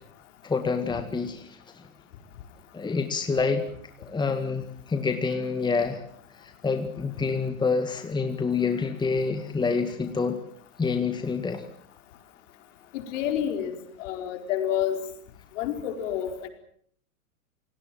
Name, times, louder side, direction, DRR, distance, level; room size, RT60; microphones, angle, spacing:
voice 1, 0.4-1.8 2.7-3.7 4.0-6.0 6.4-10.4 10.8-11.6, left 4 dB, 10° left, 7 dB, 1.9 m, -27 dB
voice 2, 12.9-15.0 15.5-16.5, left 10 dB, 55° left, 6 dB, 4.8 m, -29 dB
28.5 x 18.5 x 7.7 m, 0.63 s
hypercardioid pair, 110°, 45 cm